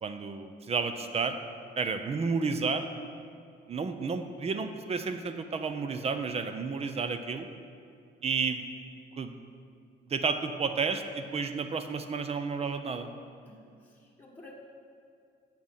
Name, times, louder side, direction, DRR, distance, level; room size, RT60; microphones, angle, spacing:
voice 1, 0.0-1.4 1.8-2.8 3.7-7.5 8.2-8.6 9.2-9.4 10.1-13.1, right 5 dB, 35° right, 9 dB, 0.7 m, -31 dB
voice 2, 13.4-14.6, left 1 dB, 10° left, -4 dB, 1.5 m, -52 dB
9.3 x 7.8 x 5.6 m, 2.4 s
cardioid pair, 120°, 18 cm